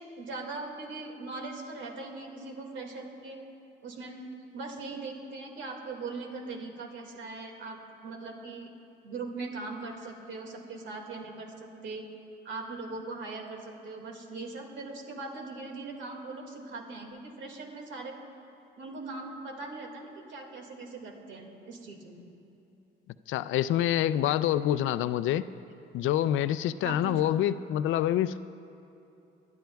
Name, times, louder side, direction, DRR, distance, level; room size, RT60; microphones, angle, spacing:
voice 1, 0.0-3.4 3.8-4.2 4.5-8.7 9.0-12.0 12.4-18.1 18.8-22.3 26.8-27.3, right 3 dB, 70° right, 2 dB, 2.0 m, -40 dB
voice 2, 23.3-25.5 25.9-28.4, left 12 dB, 80° left, 14 dB, 0.4 m, -26 dB
24.5 x 11.5 x 2.3 m, 2.9 s
cardioid pair, 90°, 20 cm